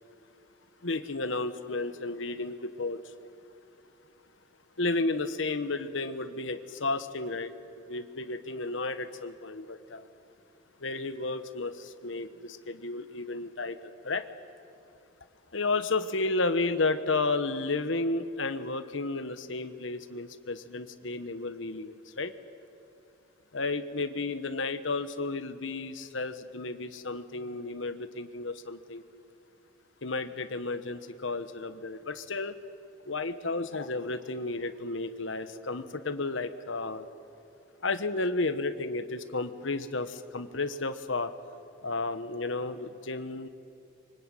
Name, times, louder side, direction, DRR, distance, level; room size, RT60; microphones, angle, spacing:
voice 1, 0.8-3.1 4.8-7.5 7.9-10.1 10.8-14.3 15.5-22.3 23.5-29.0 30.0-32.6 33.0-37.1 37.8-41.3 41.8-43.5, left 3 dB, 75° left, 10 dB, 1.3 m, -32 dB
24.5 x 24.5 x 9.1 m, 2.5 s
head